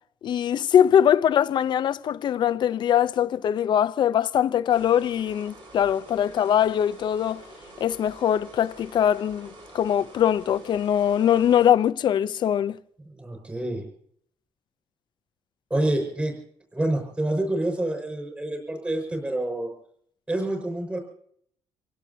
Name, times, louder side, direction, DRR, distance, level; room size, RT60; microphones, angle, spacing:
voice 1, 0.2-7.4 7.8-12.8, left 9 dB, 50° left, 0.6 m, -22 dB
sound 1, 4.7-11.7, right 1 dB, 55° right, 7.7 m, -47 dB
voice 2, 13.1-13.8 15.7-16.3 16.7-19.7 20.3-21.0, right 1 dB, 15° right, 5.5 m, -27 dB
27.0 x 17.0 x 2.8 m
cardioid pair, 170°, 10 cm